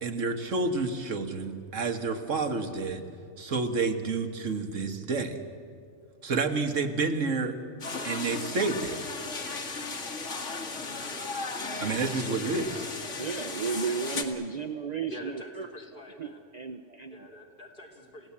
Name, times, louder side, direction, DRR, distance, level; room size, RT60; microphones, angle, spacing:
voice 1, 0.0-3.0 3.4-5.4 6.2-7.6 8.0-9.0 11.8-12.9, right 3 dB, 85° right, 7 dB, 1.8 m, -29 dB
sound 1, 7.8-14.2, left 3 dB, 75° left, 2.1 m, -35 dB
voice 2, 13.2-15.8 16.2-17.3, right 5 dB, 40° right, 10 dB, 0.7 m, -34 dB
voice 3, 15.1-16.4 17.0-18.3, equal, 45° left, 0 dB, 3.4 m, -45 dB
28.5 x 16.5 x 8.6 m, 2.2 s
omnidirectional pair, 1.3 m